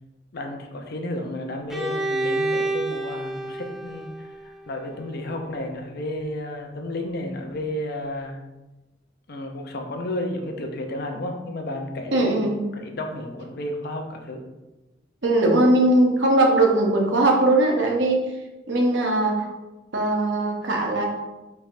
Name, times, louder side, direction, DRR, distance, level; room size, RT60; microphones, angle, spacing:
voice 1, 0.3-8.4 9.3-12.4 12.8-14.4, left 1 dB, 55° left, 3 dB, 0.6 m, -32 dB
Bowed string instrument, 1.7-5.5, right 2 dB, ahead, 0.3 m, -29 dB
voice 2, 12.1-12.6 15.2-18.2 18.7-19.5 19.9-21.1, right 1 dB, 70° right, 0 dB, 0.9 m, -20 dB
5.1 x 3.4 x 2.6 m, 1.1 s
head